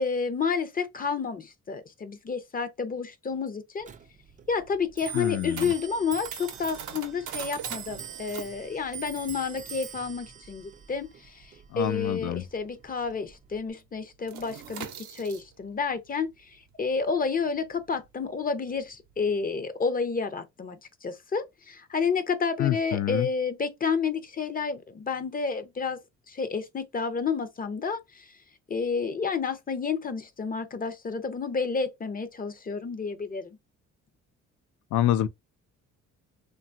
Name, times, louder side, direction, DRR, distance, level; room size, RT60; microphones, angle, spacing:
voice 1, 0.0-3.9 4.5-14.9 15.1-16.3 16.8-20.8 21.0-26.0 26.3-28.3 28.7-33.6, left 5 dB, 30° left, 0.5 m, -30 dB
Clock, 3.8-13.7, right 8 dB, 25° right, 0.3 m, -44 dB
sound 1, 4.0-13.0 13.2-13.5 13.8-19.5, right 8 dB, 75° right, 0.6 m, -43 dB
voice 2, 5.1-5.7 11.7-12.4 22.6-23.3 34.9-35.3, left 12 dB, 75° left, 0.5 m, -26 dB
2.8 x 2.3 x 2.5 m
cardioid pair, 90°, 30 cm